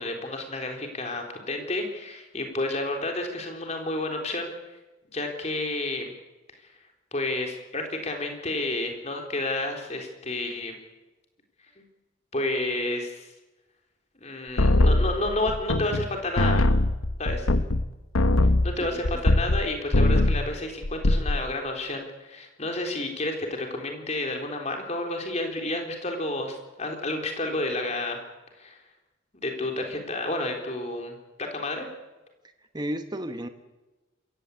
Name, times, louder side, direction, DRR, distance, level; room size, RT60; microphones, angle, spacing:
voice 1, 0.0-4.5 5.1-6.1 7.1-10.8 11.8-11.9 12.3-13.3 14.2-16.6 17.2-17.5 18.6-28.2 28.6-28.8 29.4-31.2 31.5-31.9, left 2 dB, 35° left, 3 dB, 3.9 m, -30 dB
sound 1, 14.6-16.1 16.4-19.6 19.9-20.5 20.8-21.4, left 2 dB, 85° left, 1.1 m, -21 dB
voice 2, 18.8-19.2 32.7-33.5, equal, 20° right, 7 dB, 1.2 m, -33 dB
27.0 x 15.5 x 8.3 m, 1.1 s
head